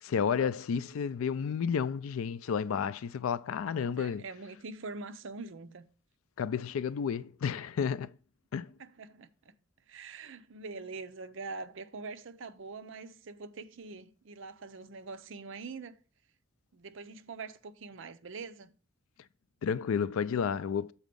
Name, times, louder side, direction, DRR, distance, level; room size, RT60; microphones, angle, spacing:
voice 1, 0.0-4.2 6.4-8.1 8.5-8.7 19.6-20.9, left 7 dB, 85° left, 0.4 m, -31 dB
voice 2, 3.6-5.9 8.8-9.5 9.9-16.0 16.7-18.7, right 4 dB, 65° right, 0.6 m, -44 dB
7.2 x 4.2 x 5.2 m
head